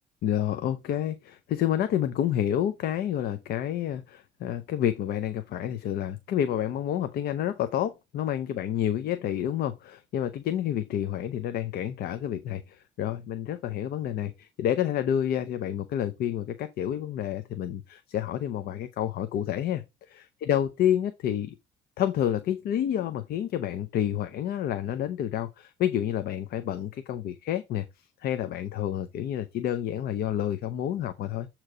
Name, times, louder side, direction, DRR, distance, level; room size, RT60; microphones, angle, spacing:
voice 1, 0.2-21.5 22.0-31.5, left 10 dB, 65° left, 0.6 m, -29 dB
7.7 x 3.0 x 4.8 m
cardioid pair, 110°, 17 cm